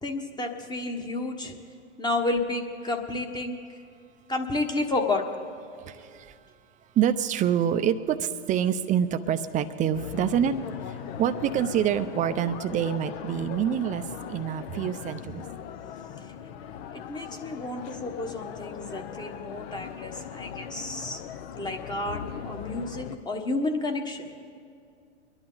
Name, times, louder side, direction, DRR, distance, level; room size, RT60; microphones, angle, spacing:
voice 1, 0.0-1.6 2.0-3.6 4.3-5.5 16.9-21.2 21.5-24.3, left 2 dB, 10° left, 4 dB, 1.2 m, -31 dB
voice 2, 5.7-6.3 7.0-10.5 10.9-11.0 11.2-14.0 14.3-15.4, right 9 dB, 20° right, 10 dB, 0.6 m, -26 dB
sound 1, 9.9-23.2, left 8 dB, 55° left, 0.9 m, -39 dB
24.0 x 11.0 x 3.9 m, 2.3 s
hypercardioid pair, 120°, 36 cm